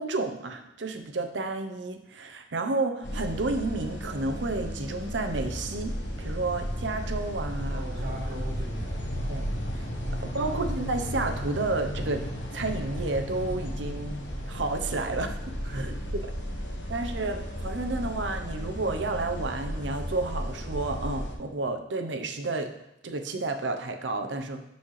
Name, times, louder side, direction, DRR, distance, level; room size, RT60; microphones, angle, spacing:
voice 1, 0.0-7.8 9.3-9.5 9.7-9.8 10.2-12.3 12.5-14.2 14.5-15.4 15.7-15.9 16.9-22.7 23.0-24.6, right 3 dB, 75° right, 6 dB, 0.7 m, -31 dB
sound 1, 3.0-21.3, equal, 70° left, 1.1 m, -34 dB
voice 2, 7.7-9.3 10.4-10.6 15.6-15.9, right 1 dB, 55° right, -2 dB, 1.7 m, -39 dB
11.5 x 4.2 x 3.2 m, 0.85 s
head